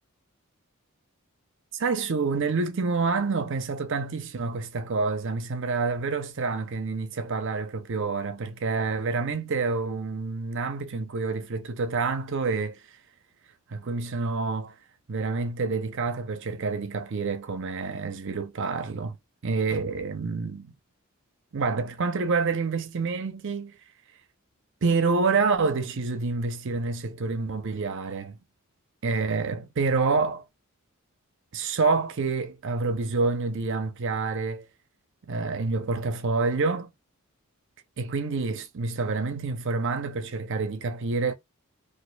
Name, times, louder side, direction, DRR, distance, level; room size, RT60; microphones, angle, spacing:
voice 1, 1.7-12.8 13.7-14.7 15.1-19.2 19.4-20.7 21.5-23.7 24.8-28.4 29.0-30.4 31.5-34.7 35.3-36.9 38.0-41.3, right 4 dB, 55° right, 0.6 m, -27 dB
4.2 x 2.6 x 2.2 m
head